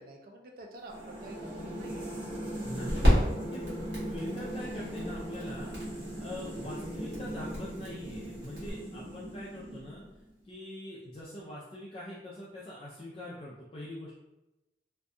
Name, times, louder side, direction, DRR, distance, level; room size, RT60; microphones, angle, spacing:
voice 1, 0.0-2.1, right 1 dB, 50° right, 2 dB, 0.4 m, -49 dB
sound 1, 0.8-8.7, equal, 70° right, 1.1 m, -33 dB
sound 2, 0.9-10.2, right 1 dB, 30° right, 0.8 m, -39 dB
voice 2, 2.6-3.2 3.5-3.6 4.1-5.7 6.2-10.0 10.4-14.1, left 1 dB, 30° left, -7 dB, 0.4 m, -43 dB
2.6 x 2.2 x 2.5 m, 0.96 s
head